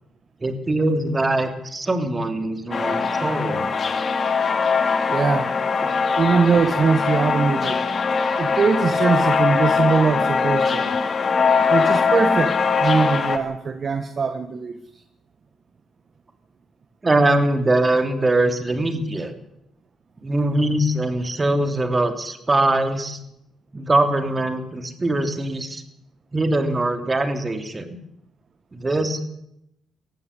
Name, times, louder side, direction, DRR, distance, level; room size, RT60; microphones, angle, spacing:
voice 1, 0.4-3.8 5.8-5.9 17.0-19.3 20.2-23.2 23.7-25.8 26.3-28.0 28.7-29.3, right 2 dB, 25° right, 8 dB, 3.2 m, -22 dB
sound 1, 2.7-13.4, left 5 dB, 45° left, 2.5 m, -21 dB
voice 2, 5.1-5.5 6.2-7.8 8.4-10.9 11.7-14.8, right 5 dB, 45° right, 9 dB, 1.5 m, -21 dB
18.0 x 15.5 x 9.9 m, 0.80 s
cardioid pair, 90°, 0 cm